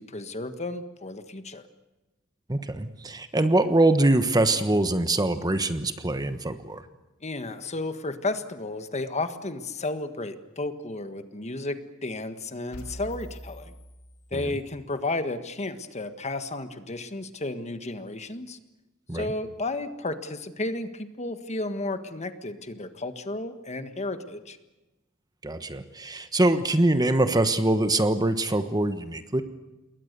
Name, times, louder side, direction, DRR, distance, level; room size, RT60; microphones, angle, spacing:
voice 1, 0.0-1.6 7.2-13.7 14.3-18.6 19.1-24.6, left 2 dB, 35° left, 9 dB, 1.6 m, -33 dB
voice 2, 2.5-6.8 14.3-14.5 19.1-19.3 25.4-29.4, right 2 dB, 20° right, 10 dB, 1.2 m, -23 dB
sound 1, 12.7-14.8, equal, 90° left, 2.7 m, -43 dB
28.5 x 22.0 x 6.8 m, 1.1 s
head